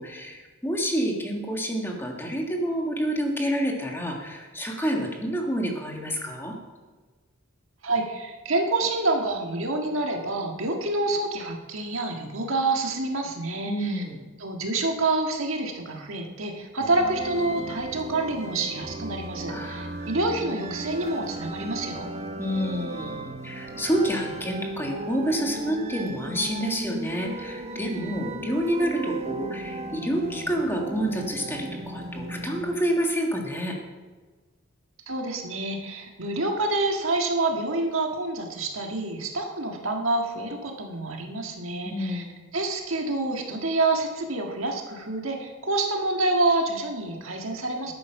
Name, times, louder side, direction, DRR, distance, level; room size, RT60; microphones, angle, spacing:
voice 1, 0.0-6.6 13.6-14.2 19.5-20.1 22.4-33.7 41.8-42.4, equal, 10° left, 1 dB, 1.7 m, -28 dB
voice 2, 7.8-14.0 14.4-22.1 35.1-42.2 42.5-47.9, right 2 dB, 65° right, 2 dB, 1.7 m, -27 dB
sound 1, 16.8-32.8, right 2 dB, 30° right, 1.0 m, -36 dB
12.0 x 9.2 x 5.8 m, 1.3 s
head